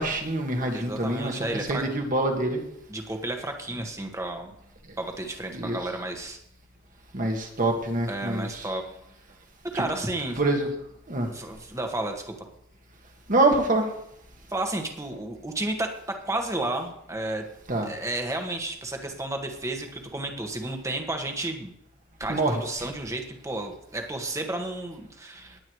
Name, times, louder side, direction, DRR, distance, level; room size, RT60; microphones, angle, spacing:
voice 1, 0.0-1.4 1.7-2.6 5.5-5.8 7.1-8.6 9.7-9.8 10.4-10.7 11.1-11.3 13.3-13.9 17.7-17.9 22.3-22.6, right 2 dB, 45° right, 3 dB, 1.8 m, -25 dB
voice 2, 0.7-1.9 2.9-4.5 5.0-6.4 8.1-8.8 9.7-10.4 11.3-12.4 14.5-15.9 16.2-17.4 17.8-21.7 22.2-25.6, right 2 dB, 15° right, 4 dB, 1.5 m, -32 dB
19.5 x 8.7 x 3.2 m, 0.76 s
head